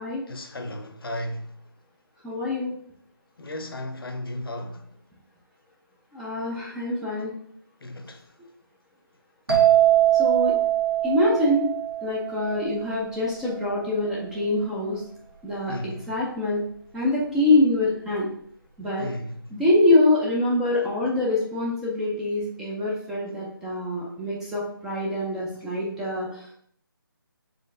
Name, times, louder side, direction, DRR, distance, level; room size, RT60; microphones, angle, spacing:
voice 1, 0.3-1.5 3.4-4.9 7.8-8.3 15.7-16.1 19.0-19.5 20.8-20.9 25.5-25.6, left 1 dB, 75° left, 0.7 m, -35 dB
voice 2, 2.2-2.8 6.1-7.3 10.1-10.5 11.0-11.7 12.0-15.0 15.4-16.6 16.9-18.3 18.8-19.1 19.5-26.3, left 2 dB, 5° right, 0.4 m, -24 dB
sound 1, 9.5-13.1, right 12 dB, 80° right, 1.8 m, -22 dB
4.3 x 3.2 x 3.6 m
figure-of-eight pair, 155°, 12 cm